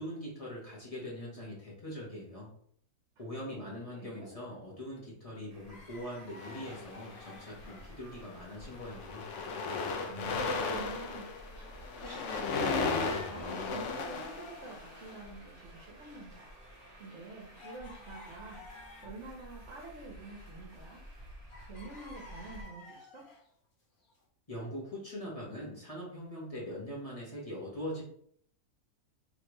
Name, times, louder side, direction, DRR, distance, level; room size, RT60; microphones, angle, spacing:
voice 1, 0.0-2.5 3.2-9.2 24.5-28.0, equal, 25° left, -6 dB, 1.2 m, -42 dB
voice 2, 3.5-4.3 10.1-11.3 11.5-11.7 12.0-16.6 17.0-21.0 21.7-23.2, right 3 dB, 60° right, -1 dB, 1.1 m, -47 dB
Traffic noise roadway noise, 5.5-22.6, right 1 dB, 30° right, 0.9 m, -53 dB
sound 1, 5.7-8.5 8.7-13.8 14.3-15.2 15.4-15.5 16.1-19.3 19.7-21.2 21.5-23.5 24.1-24.2, left 2 dB, 85° left, 1.5 m, -52 dB
sound 2, 6.4-7.4 8.1-8.3 8.6-15.1, left 4 dB, 65° left, 0.8 m, -35 dB
3.3 x 3.2 x 3.0 m, 0.62 s
omnidirectional pair, 1.5 m